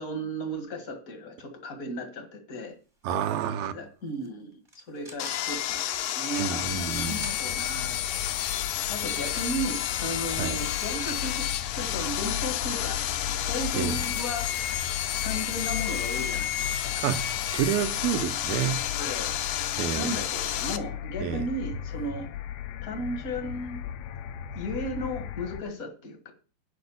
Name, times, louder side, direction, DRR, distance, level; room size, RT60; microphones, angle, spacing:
voice 1, 0.0-2.8 3.6-8.0 8.9-11.5 11.7-13.1 13.5-14.5 15.2-17.0 19.0-19.3 20.0-22.3 22.8-23.8 24.5-26.3, equal, 45° left, 1.1 m, -35 dB
voice 2, 3.0-3.7 6.4-7.2 10.4-10.6 13.7-14.0 17.0-18.8 19.8-20.1 21.2-21.5, right 9 dB, 75° right, 2.5 m, -29 dB
sound 1, 4.1-4.3 4.6-8.0 8.6-17.1, right 1 dB, 15° right, 0.8 m, -49 dB
Sawing, 5.2-20.8, left 11 dB, 75° left, 2.2 m, -31 dB
sound 2, 6.6-25.6, left 10 dB, 90° left, 2.8 m, -37 dB
11.0 x 5.2 x 7.1 m
omnidirectional pair, 4.4 m